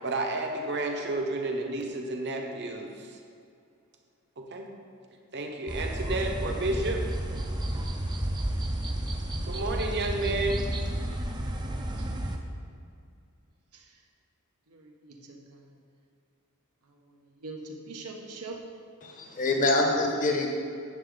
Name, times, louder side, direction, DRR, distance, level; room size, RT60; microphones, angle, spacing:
voice 1, 0.0-3.2 4.4-4.7 5.3-7.0 9.5-10.7, right 2 dB, 50° right, 2 dB, 1.1 m, -31 dB
sound 1, 5.7-12.4, right 1 dB, 20° right, 0.7 m, -31 dB
voice 2, 14.7-15.7 16.9-18.6 19.3-19.4, right 3 dB, 85° right, 0 dB, 1.4 m, -44 dB
voice 3, 19.0-20.5, left 2 dB, 35° left, 1 dB, 1.1 m, -25 dB
10.5 x 7.6 x 4.0 m, 2.4 s
head